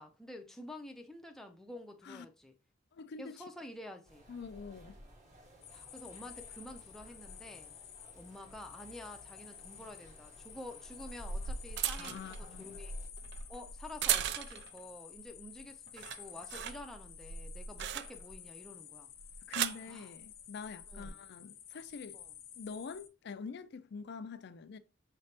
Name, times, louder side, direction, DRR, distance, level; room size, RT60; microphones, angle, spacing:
voice 1, 0.0-2.6 3.2-4.3 5.7-7.8 8.2-12.9 13.5-19.1 19.9-20.1 20.9-21.2 22.1-22.3, left 1 dB, ahead, 0.5 m, -49 dB
voice 2, 2.9-3.3 4.3-5.0 12.0-12.8 19.5-22.2 22.6-24.8, left 5 dB, 55° left, 0.4 m, -45 dB
sound 1, 4.0-13.1, equal, 35° right, 1.6 m, -57 dB
sound 2, 5.6-23.1, left 10 dB, 85° left, 0.8 m, -52 dB
sound 3, 9.6-9.7 10.8-14.8 15.2-15.6 15.9-18.4 19.2-19.9 20.8-21.1, right 9 dB, 60° right, 0.4 m, -38 dB
5.8 x 3.3 x 2.8 m
head